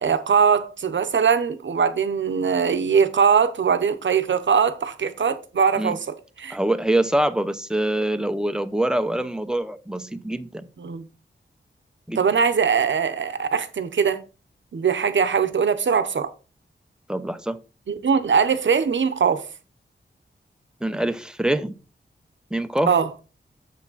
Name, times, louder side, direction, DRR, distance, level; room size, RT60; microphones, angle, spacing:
voice 1, 0.0-6.6 10.8-11.1 12.2-14.2 14.7-16.3 17.9-19.4 22.9-23.1, right 6 dB, 75° right, 0.9 m, -21 dB
voice 2, 6.5-10.6 12.1-12.2 17.1-17.6 20.8-21.7 22.5-23.0, right 1 dB, 5° right, 0.7 m, -24 dB
7.4 x 6.1 x 4.0 m
wide cardioid pair, 95°, 19 cm